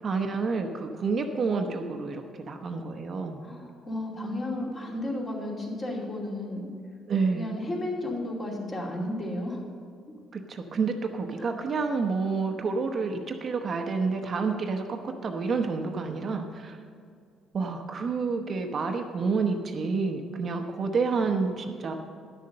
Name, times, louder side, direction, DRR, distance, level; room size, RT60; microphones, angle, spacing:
voice 1, 0.0-3.4 7.1-7.5 10.3-16.8 17.5-21.9, right 4 dB, 40° right, 4 dB, 0.8 m, -29 dB
voice 2, 3.4-6.7 7.3-9.6, left 1 dB, 30° left, -2 dB, 2.5 m, -33 dB
11.0 x 6.8 x 6.5 m, 2.2 s
cardioid pair, 115°, 0 cm